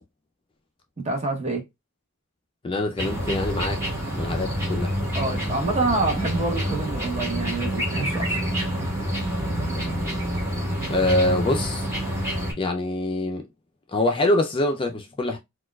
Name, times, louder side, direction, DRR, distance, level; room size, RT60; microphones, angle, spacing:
voice 1, 1.0-1.6 5.1-8.3, right 3 dB, 30° right, 0.9 m, -26 dB
voice 2, 2.6-4.9 10.9-11.9 12.6-13.4 13.9-15.4, left 1 dB, 25° left, 0.4 m, -24 dB
sound 1, 3.0-12.5, equal, 15° right, 1.2 m, -27 dB
4.3 x 2.3 x 2.2 m
head